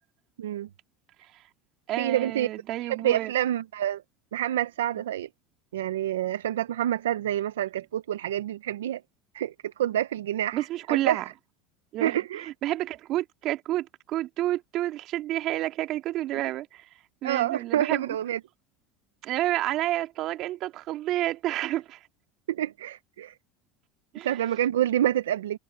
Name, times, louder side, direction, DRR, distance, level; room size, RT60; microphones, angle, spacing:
voice 1, 0.4-0.7 2.0-2.5 2.8-4.0 4.3-5.3 5.7-9.0 9.3-11.2 12.0-12.5 17.2-18.4 22.5-23.3 24.2-25.6, right 11 dB, 90° right, 0.7 m, -27 dB
voice 2, 1.9-3.3 10.5-11.3 11.9-12.2 12.6-16.9 17.2-18.2 19.2-22.1 24.1-24.4, right 15 dB, 55° right, 2.2 m, -30 dB
hypercardioid pair, 90°, 0 cm